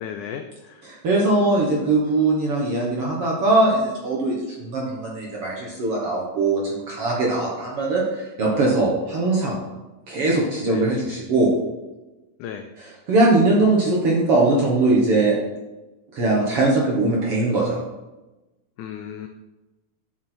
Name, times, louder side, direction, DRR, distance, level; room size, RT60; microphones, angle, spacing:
voice 1, 0.0-0.9 10.7-10.9 12.4-12.7 18.8-19.3, left 8 dB, 85° left, 6 dB, 1.7 m, -35 dB
voice 2, 0.9-9.6 10.1-11.5 13.1-15.4 16.1-17.8, right 2 dB, 55° right, -3 dB, 1.6 m, -21 dB
9.0 x 7.2 x 4.4 m, 1.1 s
omnidirectional pair, 4.2 m